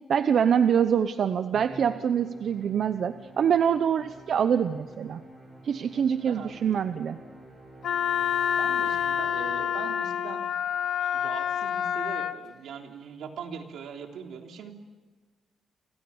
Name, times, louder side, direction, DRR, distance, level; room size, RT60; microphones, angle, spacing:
voice 1, 0.1-5.2 5.6-7.2, right 8 dB, 55° right, 10 dB, 0.9 m, -25 dB
Musical instrument, 1.5-10.1, right 1 dB, 20° right, 7.9 m, -49 dB
voice 2, 6.2-6.5 8.5-10.5 11.0-14.7, right 6 dB, 80° right, 3 dB, 3.4 m, -41 dB
Wind instrument woodwind instrument, 7.8-12.4, left 8 dB, 70° left, 1.2 m, -28 dB
30.0 x 26.0 x 7.2 m, 1.4 s
cardioid pair, 150°, 0 cm